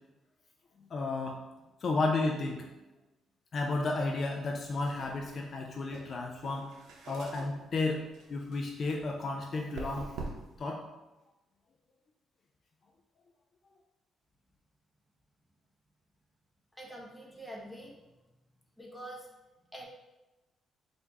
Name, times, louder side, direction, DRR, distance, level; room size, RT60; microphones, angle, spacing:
voice 1, 0.9-1.4 1.8-2.7 3.5-6.7 7.1-10.1 10.6-10.8, left 3 dB, 50° left, 1 dB, 0.4 m, -32 dB
sound 1, 4.5-10.6, right 3 dB, 80° right, 0.7 m, -46 dB
voice 2, 16.7-17.9 18.8-19.3 19.7-19.8, right 1 dB, 5° left, -3 dB, 1.1 m, -45 dB
4.4 x 2.6 x 3.6 m, 1.0 s
cardioid pair, 90°, 0 cm